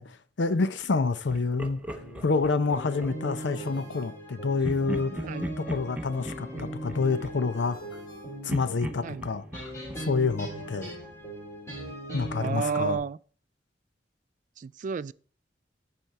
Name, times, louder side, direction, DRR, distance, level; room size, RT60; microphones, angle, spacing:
voice 1, 0.0-1.8 2.2-5.1 5.6-7.8 8.4-9.7 10.0-10.9 12.1-13.0, left 4 dB, 80° left, 0.6 m, -28 dB
Laughter, 1.3-3.4 4.6-8.1 8.5-11.2, equal, 10° right, 0.7 m, -39 dB
sound 1, 1.9-13.0, right 1 dB, 15° left, 3.0 m, -40 dB
Ringtone, 3.4-5.0 7.5-9.2, equal, 30° left, 3.4 m, -54 dB
voice 2, 12.4-13.2 14.6-15.1, right 5 dB, 45° right, 0.3 m, -31 dB
12.0 x 4.4 x 4.6 m
head